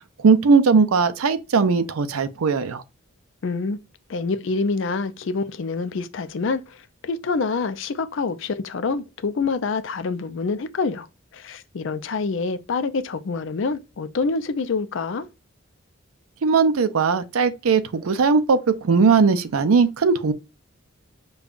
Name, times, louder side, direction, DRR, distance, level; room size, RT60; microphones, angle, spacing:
voice 1, 0.2-2.8 16.4-20.3, right 5 dB, 80° right, 0.5 m, -19 dB
voice 2, 3.4-3.8 4.1-11.1 11.3-15.3, left 4 dB, 60° left, 0.4 m, -26 dB
5.2 x 2.3 x 2.4 m
head